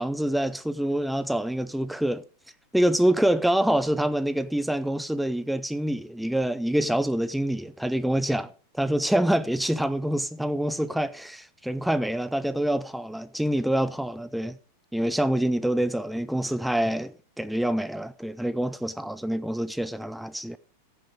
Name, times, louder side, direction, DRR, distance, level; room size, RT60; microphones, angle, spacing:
voice 1, 0.0-2.2 2.7-8.5 8.8-14.6 14.9-20.6, right 1 dB, ahead, 0.6 m, -26 dB
15.5 x 8.5 x 5.2 m
figure-of-eight pair, 90°, 0 cm